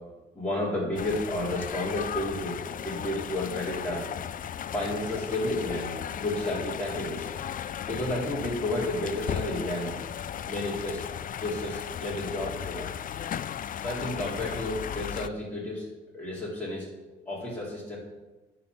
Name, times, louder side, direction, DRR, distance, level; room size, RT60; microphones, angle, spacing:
voice 1, 0.3-4.1 4.7-7.3 7.9-10.0 10.4-11.0 11.4-12.9 13.8-15.9 16.1-16.8 17.1-18.0, left 1 dB, 10° left, -7 dB, 3.8 m, -31 dB
sound 1, 1.0-15.3, left 9 dB, 45° left, 0.4 m, -36 dB
11.0 x 4.5 x 7.7 m, 1.2 s
cardioid pair, 90°, 20 cm